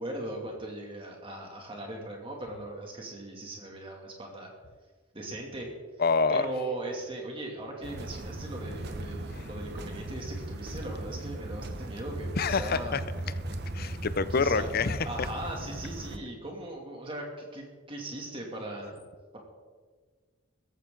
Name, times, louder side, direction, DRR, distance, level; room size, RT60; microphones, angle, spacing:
voice 1, 0.0-4.5 5.1-5.7 6.3-13.0 14.3-14.7 15.1-19.0, right 1 dB, 25° right, 0 dB, 2.5 m, -39 dB
voice 2, 6.0-6.5 9.3-9.5 12.4-13.0 13.7-15.3, left 4 dB, 45° left, 15 dB, 0.5 m, -27 dB
sound 1, 7.8-16.2, right 1 dB, 50° right, 1.0 m, -37 dB
16.0 x 14.5 x 3.9 m, 1.5 s
head